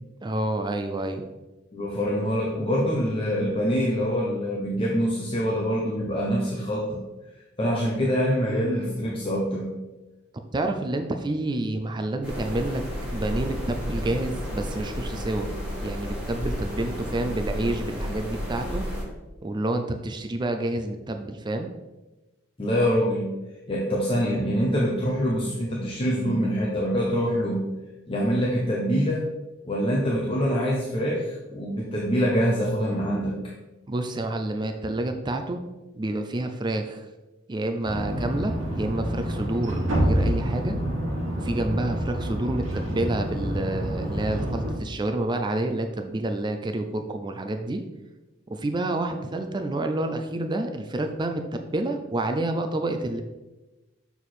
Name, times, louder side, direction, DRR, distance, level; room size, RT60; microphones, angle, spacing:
voice 1, 0.2-1.3 10.5-12.9 13.1-15.5 15.8-18.8 19.4-21.7 33.9-35.6 35.9-37.1 37.5-40.8 41.3-47.8 48.5-51.4 51.7-53.2, right 2 dB, 25° right, 6 dB, 0.4 m, -28 dB
voice 2, 1.7-7.0 7.6-9.7 22.6-23.3 23.7-27.6 28.1-29.3 29.6-33.4, equal, 30° left, -3 dB, 0.9 m, -25 dB
sound 1, 12.2-19.0, equal, 5° right, 2.1 m, -32 dB
sound 2, 37.8-44.7, equal, 80° right, 1.6 m, -27 dB
6.8 x 4.6 x 4.3 m, 1.1 s
head